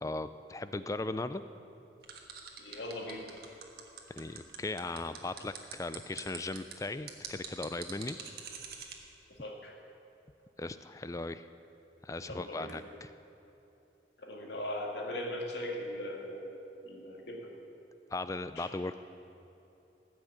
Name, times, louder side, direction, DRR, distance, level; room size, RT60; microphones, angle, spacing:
voice 1, 0.0-1.4 4.1-8.2 10.6-11.5 12.0-13.1 18.1-18.9, left 2 dB, 20° left, 12 dB, 0.4 m, -38 dB
sound 1, 2.0-9.0, right 7 dB, 55° right, 1.4 m, -44 dB
voice 2, 2.6-3.3 9.4-9.7 12.3-12.8 14.2-17.5 18.6-18.9, left 1 dB, 75° left, 0 dB, 2.1 m, -40 dB
18.5 x 6.3 x 8.6 m, 2.9 s
head